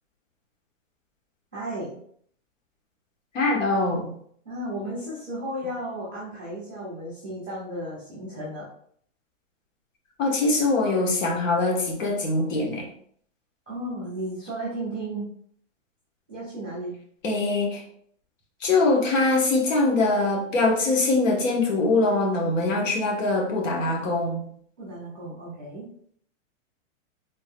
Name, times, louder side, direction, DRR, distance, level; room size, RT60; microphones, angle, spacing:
voice 1, 1.5-2.0 4.4-8.6 13.7-15.3 16.3-17.0 24.8-25.8, right 1 dB, 10° right, -15 dB, 0.3 m, -34 dB
voice 2, 3.3-4.1 10.2-12.9 17.2-17.8 18.6-24.5, left 2 dB, 70° left, 0 dB, 1.4 m, -23 dB
3.9 x 3.6 x 2.3 m, 0.62 s
hypercardioid pair, 165°, 40 cm